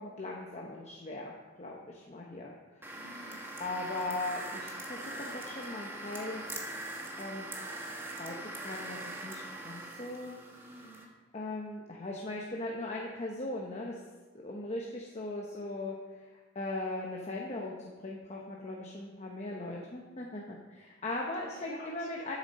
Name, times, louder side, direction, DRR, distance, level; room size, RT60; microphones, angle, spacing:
voice 1, 0.0-2.5 3.6-6.4 7.2-7.5 8.2-10.4 11.3-14.0 14.4-22.4, left 2 dB, 35° left, -1 dB, 1.0 m, -39 dB
sound 1, 2.8-11.0, right 1 dB, 10° right, 1.3 m, -42 dB
voice 2, 2.9-3.5 10.5-11.1 21.4-22.4, left 1 dB, 55° left, -3 dB, 3.8 m, -52 dB
13.0 x 7.4 x 4.2 m, 1.3 s
head